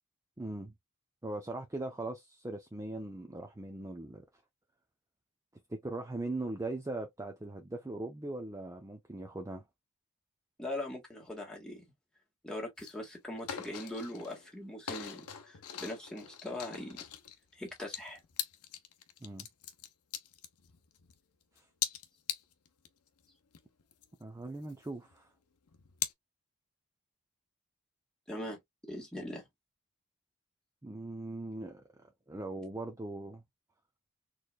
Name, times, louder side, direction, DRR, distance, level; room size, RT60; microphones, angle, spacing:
voice 1, 0.4-0.7 1.2-4.3 5.7-9.6 19.2-19.5 21.6-21.7 24.2-25.3 30.8-33.4, right 2 dB, 15° right, 0.5 m, -40 dB
voice 2, 10.6-11.8 12.4-17.0 17.5-18.2 28.3-28.6 28.9-29.5, left 1 dB, 5° left, 1.6 m, -41 dB
sound 1, 12.8-13.1 13.3-14.5 14.9-21.2 21.6-22.9 23.3-23.4 23.5-25.1 25.7-26.1, left 10 dB, 90° left, 0.7 m, -41 dB
4.2 x 3.2 x 2.3 m
head